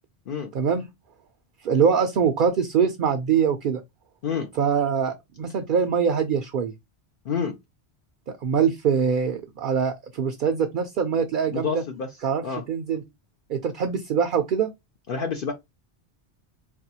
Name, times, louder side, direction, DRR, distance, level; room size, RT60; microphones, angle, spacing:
voice 1, 0.5-0.9 1.6-3.8 4.6-6.7 8.3-11.8 12.2-13.0 13.5-14.7, right 6 dB, 60° right, 0.6 m, -23 dB
voice 2, 11.5-12.1 12.4-12.6 15.1-15.5, left 6 dB, 60° left, 0.7 m, -28 dB
4.1 x 2.2 x 2.7 m
omnidirectional pair, 1.2 m